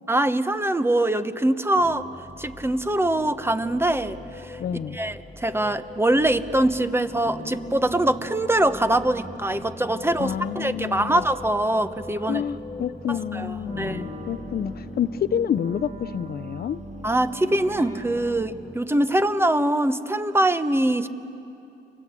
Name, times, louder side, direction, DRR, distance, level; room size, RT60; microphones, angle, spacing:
voice 1, 0.1-2.1 2.4-4.6 4.9-12.4 13.1-14.0 17.0-21.1, right 1 dB, 10° right, 11 dB, 1.1 m, -23 dB
sound 1, 1.8-18.8, left 2 dB, 20° left, 1.6 m, -40 dB
voice 2, 4.6-5.0 10.2-11.2 12.3-16.8, left 9 dB, 50° left, 14 dB, 0.7 m, -28 dB
Wind instrument woodwind instrument, 13.6-18.7, right 6 dB, 35° right, 1.2 m, -43 dB
30.0 x 23.5 x 8.3 m, 2.8 s
cardioid pair, 90°, 20 cm